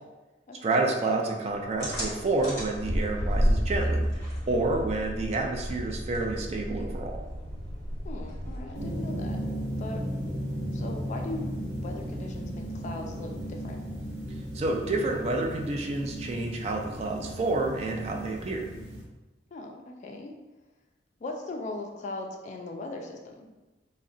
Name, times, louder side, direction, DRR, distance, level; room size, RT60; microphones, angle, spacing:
voice 1, 0.6-7.2 14.5-18.7, right 2 dB, 35° right, 1 dB, 0.3 m, -29 dB
sound 1, 1.8-9.0, equal, 20° left, 1.2 m, -31 dB
voice 2, 8.0-9.4 9.8-10.4 10.7-11.5 11.8-13.8 19.5-20.3 21.2-23.5, left 2 dB, 40° left, 3 dB, 0.3 m, -39 dB
sound 2, 8.7-19.0, equal, 75° right, 0.7 m, -35 dB
2.4 x 2.1 x 3.7 m, 1.1 s
head